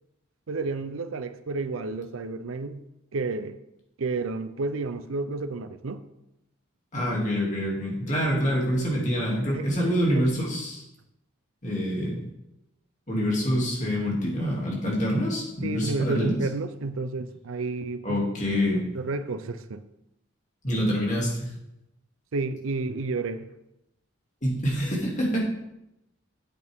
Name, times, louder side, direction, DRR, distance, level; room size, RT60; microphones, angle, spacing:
voice 1, 0.5-2.8 3.1-3.5 4.0-6.0 9.5-9.7 10.0-10.2 15.6-18.3 18.7-19.8 22.3-23.5, right 3 dB, 80° right, 0.6 m, -31 dB
voice 2, 6.9-10.8 11.6-12.2 13.1-16.3 18.0-18.9 20.6-21.5 24.4-25.4, equal, 35° left, 2.6 m, -26 dB
9.0 x 8.1 x 3.6 m
head